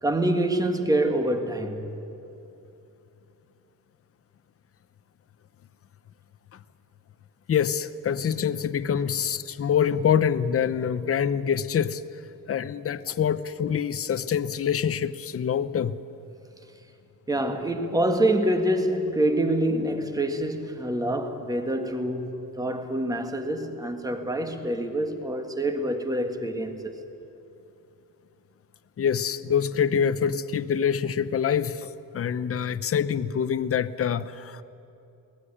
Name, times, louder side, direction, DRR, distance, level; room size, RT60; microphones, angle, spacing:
voice 1, 0.0-1.9 17.3-27.0, right 1 dB, 10° right, 1.6 m, -26 dB
voice 2, 7.5-12.0 12.5-15.9 29.0-34.6, left 8 dB, 40° left, 0.7 m, -25 dB
22.5 x 18.0 x 9.9 m
wide cardioid pair, 145°, 35 cm